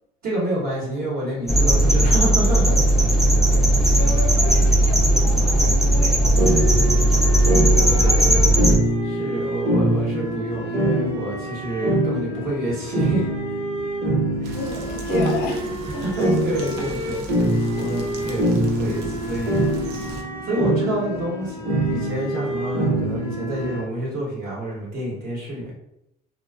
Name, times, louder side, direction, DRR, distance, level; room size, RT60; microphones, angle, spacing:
voice 1, 0.2-2.8 3.8-3.9 8.0-8.4 9.0-13.3 14.4-14.6 15.9-19.6 20.4-21.6 21.9-25.7, right 1 dB, 65° right, -5 dB, 1.0 m, -28 dB
sound 1, 1.5-8.8, right 1 dB, ahead, 0.3 m, -17 dB
voice 2, 3.6-8.5 14.5-16.1, left 4 dB, 70° left, -1 dB, 0.4 m, -34 dB
sound 2, 6.4-23.8, right 1 dB, 35° right, 1.0 m, -24 dB
sound 3, 14.4-20.2, right 2 dB, 85° right, 0.5 m, -36 dB
2.4 x 2.3 x 2.3 m, 0.83 s
cardioid pair, 110°, 17 cm